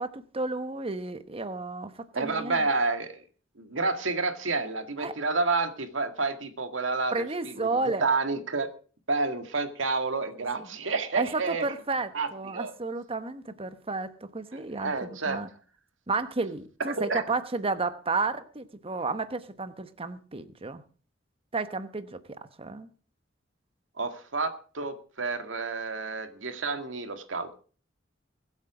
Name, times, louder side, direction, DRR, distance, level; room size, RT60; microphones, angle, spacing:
voice 1, 0.0-2.7 5.0-5.1 7.1-8.1 10.6-10.7 11.2-15.5 16.1-20.8 21.5-22.2 22.6-22.9, right 3 dB, 30° right, 1.1 m, -32 dB
voice 2, 2.1-3.2 3.6-8.7 9.1-11.7 12.1-12.7 14.5-15.4 16.9-17.2 24.0-27.6, right 3 dB, 85° right, 2.0 m, -30 dB
22.0 x 8.2 x 5.0 m
head